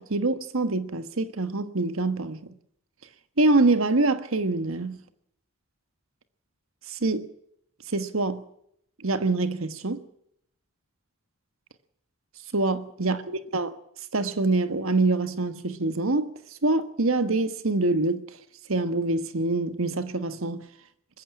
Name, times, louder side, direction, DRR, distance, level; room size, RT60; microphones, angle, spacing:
voice 1, 0.0-2.5 3.4-5.0 6.9-7.3 7.9-8.4 9.0-10.0 12.5-13.2 13.5-13.7 14.1-16.3 16.6-18.2 18.7-20.6, right 2 dB, 75° right, 1.4 m, -25 dB
21.0 x 15.0 x 8.7 m
head